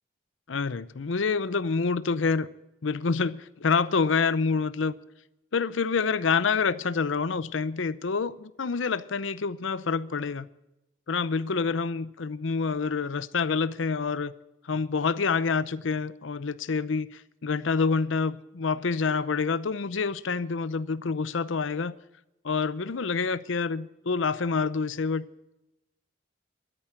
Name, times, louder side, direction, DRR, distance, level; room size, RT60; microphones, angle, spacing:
voice 1, 0.5-2.5 2.8-4.9 5.5-10.5 11.1-14.3 14.6-21.9 22.4-25.3, left 5 dB, 90° left, 0.7 m, -27 dB
13.0 x 10.5 x 9.1 m
head